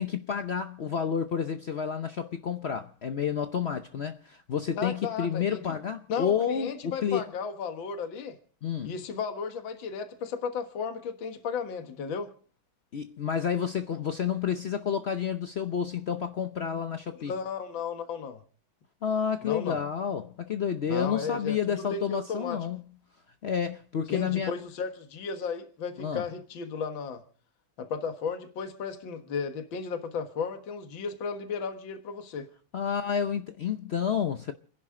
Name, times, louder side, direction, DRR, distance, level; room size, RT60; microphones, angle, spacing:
voice 1, 0.0-7.3 8.6-8.9 12.9-17.3 19.0-22.8 23.4-24.5 26.0-26.2 32.7-34.5, left 7 dB, 90° left, 0.5 m, -30 dB
voice 2, 4.8-5.7 6.1-8.4 8.8-12.3 17.2-18.4 19.4-19.8 20.9-22.6 24.1-27.2 27.8-32.5, left 5 dB, 70° left, 2.2 m, -34 dB
29.5 x 11.0 x 3.7 m
omnidirectional pair, 2.3 m